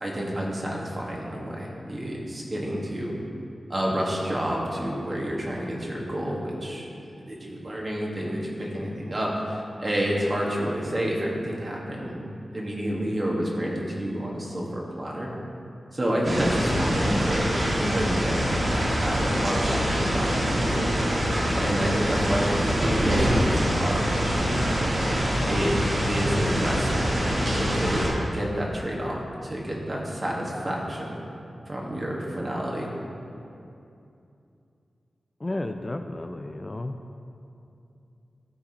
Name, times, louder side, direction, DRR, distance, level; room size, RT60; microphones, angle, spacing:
voice 1, 0.0-3.1 3.7-6.8 7.2-15.3 15.9-21.0 21.5-24.6 25.5-25.7 26.1-27.1 27.5-31.2 31.7-32.9, equal, 40° right, -3 dB, 1.5 m, -29 dB
sound 1, 16.2-28.1, equal, 60° right, 1.8 m, -25 dB
voice 2, 35.4-36.9, left 2 dB, 30° left, 6 dB, 0.3 m, -32 dB
13.0 x 4.7 x 2.9 m, 2.7 s
cardioid pair, 60°, 0 cm